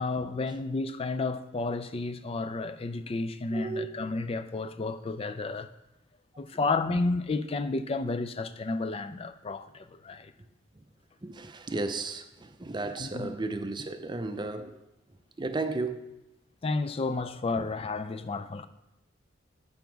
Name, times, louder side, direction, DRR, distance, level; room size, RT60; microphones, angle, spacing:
voice 1, 0.0-5.7 6.4-10.3 13.0-13.3 16.6-18.7, left 3 dB, 30° left, 0.4 m, -31 dB
voice 2, 3.5-3.9 10.8-10.9 11.2-14.8 15.4-16.1 17.6-17.7, right 3 dB, 25° right, 0.5 m, -34 dB
7.3 x 6.9 x 4.6 m
head